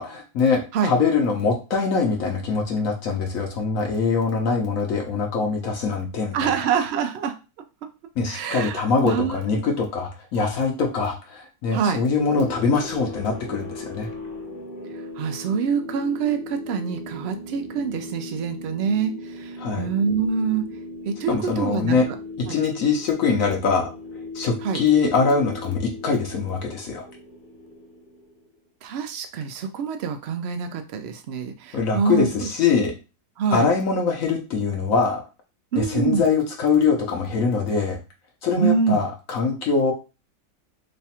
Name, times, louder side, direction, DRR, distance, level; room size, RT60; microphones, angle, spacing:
voice 1, 0.0-6.5 8.2-14.1 19.6-19.9 21.3-22.0 22.4-23.9 24.3-27.0 31.7-32.9 33.5-35.2 35.7-38.0 38.4-39.9, left 5 dB, 65° left, 2 dB, 1.0 m, -23 dB
voice 2, 6.3-7.3 8.3-9.4 11.7-12.0 15.2-20.6 21.1-22.2 22.5-22.6 24.6-24.8 28.8-32.5 33.4-33.7 35.7-36.2 38.6-39.0, right 6 dB, 75° right, 7 dB, 0.6 m, -25 dB
sound 1, 12.2-28.5, left 2 dB, 45° left, 0.9 m, -38 dB
3.2 x 2.3 x 4.1 m, 0.30 s
omnidirectional pair, 1.6 m